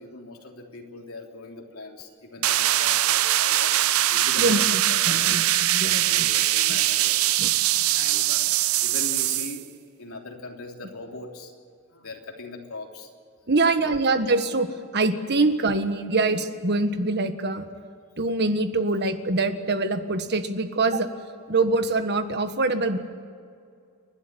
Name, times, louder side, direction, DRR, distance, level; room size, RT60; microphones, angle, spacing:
voice 1, 0.0-4.6 4.9-5.5 5.9-9.6 10.0-11.5 11.9-13.1 13.6-14.0, left 3 dB, 75° left, 1 dB, 3.4 m, -40 dB
sound 1, 2.4-9.6, right 14 dB, 80° right, 0.6 m, -22 dB
voice 2, 4.4-4.8 5.1-6.3 6.7-6.8 7.4-7.5 13.5-14.7 14.9-17.6 18.2-21.1 21.5-23.0, right 3 dB, 50° right, 8 dB, 1.5 m, -24 dB
29.5 x 12.5 x 9.9 m, 2.3 s
head